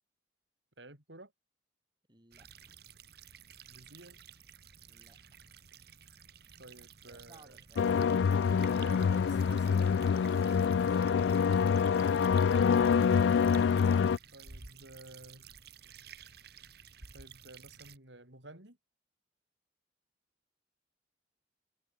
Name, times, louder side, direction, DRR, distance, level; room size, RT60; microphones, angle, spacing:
voice 1, 0.8-1.3 3.7-4.2 6.6-7.6 8.8-9.8 14.3-15.5 17.1-18.8, right 2 dB, 90° right, 6.9 m, -52 dB
voice 2, 2.1-2.8 4.9-5.4 7.1-7.9 10.2-12.2, right 2 dB, 25° right, 5.8 m, -59 dB
sound 1, 2.3-18.0, right 7 dB, 60° right, 2.8 m, -53 dB
sound 2, 7.8-14.2, left 6 dB, 85° left, 0.3 m, -26 dB
head